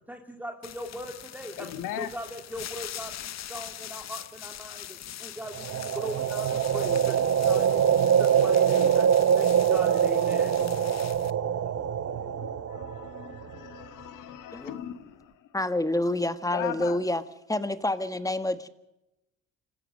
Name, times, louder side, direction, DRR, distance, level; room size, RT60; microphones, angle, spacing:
voice 1, 0.1-9.1 9.3-10.7, equal, 5° right, 3 dB, 2.1 m, -40 dB
sound 1, 0.6-11.3, left 11 dB, 60° left, 0.9 m, -42 dB
voice 2, 1.6-2.1 6.7-6.8 10.1-15.3 16.5-17.0, left 10 dB, 80° left, 10 dB, 1.7 m, -40 dB
sound 2, 5.5-13.6, right 8 dB, 50° right, 0.9 m, -24 dB
voice 3, 15.5-17.2 17.5-18.7, left 1 dB, 10° left, 11 dB, 1.5 m, -28 dB
27.0 x 15.5 x 6.6 m, 0.90 s
supercardioid pair, 75°, 31 cm